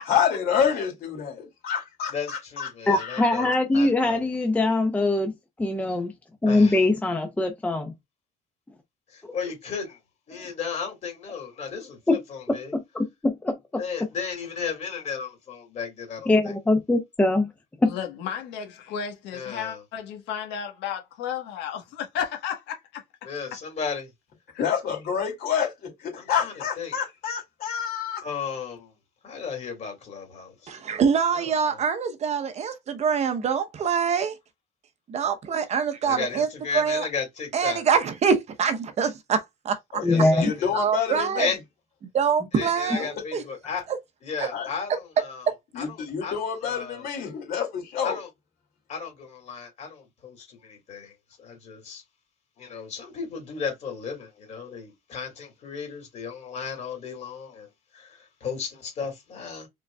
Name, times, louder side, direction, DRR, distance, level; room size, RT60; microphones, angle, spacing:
voice 1, 0.1-3.5 24.6-28.2 39.9-41.6 43.0-43.1 44.5-44.7 45.7-48.2, left 8 dB, 60° left, 2.3 m, -28 dB
voice 2, 2.1-4.2 6.5-6.8 9.1-10.0 10.3-12.7 13.8-16.2 19.3-19.8 23.2-24.1 26.2-26.9 28.2-28.9 29.2-30.7 31.3-31.4 36.0-37.8 40.0-40.8 41.4-41.6 42.5-43.8 44.2-45.4 45.8-45.9 46.2-47.0 48.0-48.3 48.9-51.1 51.4-52.0 52.6-57.7 57.9-59.7, left 6 dB, 40° left, 2.4 m, -34 dB
voice 3, 2.9-5.3 5.6-6.1 6.4-7.9 12.1-12.2 16.3-17.5 17.8-17.9 40.0-40.5, left 2 dB, 10° left, 0.6 m, -22 dB
voice 4, 17.8-23.0 24.5-24.6, left 8 dB, 85° left, 1.2 m, -33 dB
voice 5, 30.7-34.4 35.1-36.5 36.7-37.1 37.5-39.8 40.7-41.5 42.1-43.4 43.9-44.0 44.4-44.5 45.5-45.6, right 6 dB, 40° right, 0.7 m, -25 dB
5.0 x 3.8 x 2.2 m
cardioid pair, 145°, 17 cm